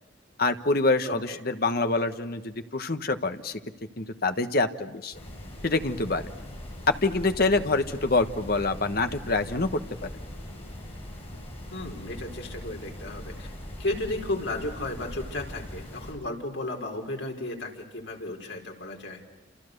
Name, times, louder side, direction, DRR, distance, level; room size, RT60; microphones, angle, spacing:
voice 1, 0.4-3.6 4.0-5.2 5.6-6.3 6.9-10.1, left 3 dB, 55° left, 8 dB, 1.4 m, -26 dB
voice 2, 1.0-1.4 11.7-13.5 13.8-19.2, left 2 dB, 85° left, 1 dB, 4.6 m, -34 dB
sound 1, 5.1-16.1, left 1 dB, 35° left, 8.0 m, -41 dB
29.0 x 28.0 x 6.8 m, 1.1 s
head